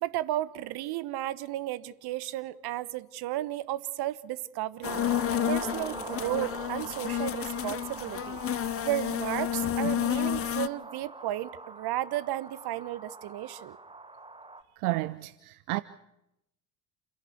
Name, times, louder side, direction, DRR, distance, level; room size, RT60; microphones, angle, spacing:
voice 1, 0.0-5.0 5.5-8.4 8.8-13.8, right 14 dB, 55° right, 1.2 m, -33 dB
sound 1, 4.8-10.7, left 11 dB, 30° left, 0.7 m, -31 dB
sound 2, 4.8-14.6, right 2 dB, 10° right, 1.5 m, -42 dB
voice 2, 14.8-15.8, right 20 dB, 75° right, 0.7 m, -31 dB
29.0 x 11.0 x 8.4 m
hypercardioid pair, 65°, 45 cm